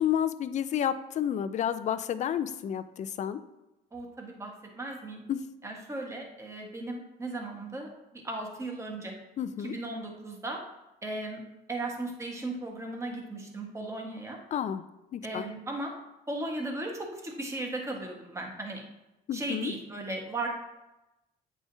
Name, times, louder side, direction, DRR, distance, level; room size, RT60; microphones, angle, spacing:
voice 1, 0.0-3.4 5.3-5.4 9.4-9.8 14.5-14.8 15.1-15.5 19.3-19.7, left 9 dB, 45° left, 12 dB, 0.4 m, -30 dB
voice 2, 3.9-5.2 5.6-9.1 9.6-10.6 11.0-11.4 11.7-14.4 15.2-15.9 16.3-18.8 19.3-20.5, right 2 dB, 15° right, 1 dB, 1.3 m, -36 dB
8.5 x 4.9 x 2.7 m, 0.95 s
cardioid pair, 110°, 17 cm